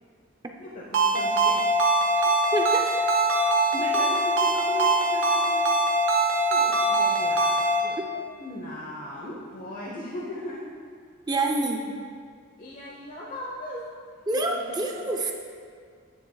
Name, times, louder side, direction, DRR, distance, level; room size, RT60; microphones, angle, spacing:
voice 1, 0.6-1.6 3.3-5.6 6.2-7.5 7.8-8.0 8.4-10.7 12.6-14.0 14.3-14.8, left 1 dB, 45° left, -4 dB, 1.0 m, -38 dB
Ringtone, 0.9-7.8, right 1 dB, 90° right, 0.8 m, -22 dB
voice 2, 2.2-3.0 4.0-4.1 8.1-8.2 11.3-11.9 14.3-15.3, right 2 dB, 20° right, 2 dB, 0.6 m, -28 dB
10.0 x 9.4 x 2.3 m, 2.1 s
head